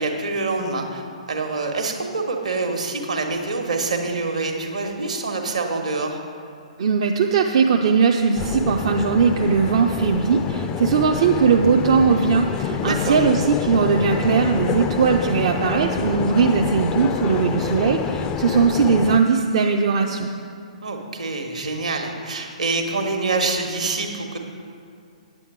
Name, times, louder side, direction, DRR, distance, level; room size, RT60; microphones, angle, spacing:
voice 1, 0.0-6.2 12.8-13.2 20.8-24.4, right 3 dB, 70° right, 4 dB, 1.3 m, -26 dB
voice 2, 6.8-20.3, right 5 dB, 50° right, 2 dB, 0.5 m, -19 dB
sound 1, 8.4-19.2, left 7 dB, 20° left, 0.4 m, -27 dB
9.2 x 8.3 x 5.1 m, 2.4 s
figure-of-eight pair, 120°, 4 cm